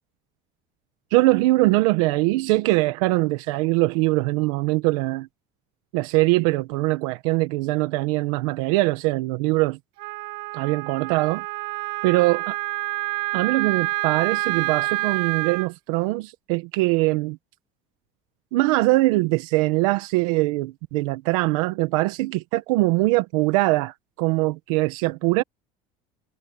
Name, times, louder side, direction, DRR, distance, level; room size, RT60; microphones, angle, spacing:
voice 1, 1.1-5.3 5.9-9.8 10.5-11.4 12.0-12.5 13.3-17.4 18.5-25.4, right 21 dB, 85° right, 1.5 m, -22 dB
Wind instrument woodwind instrument, 10.0-15.7, right 20 dB, 65° right, 2.0 m, -28 dB
cardioid pair, 155°, 17 cm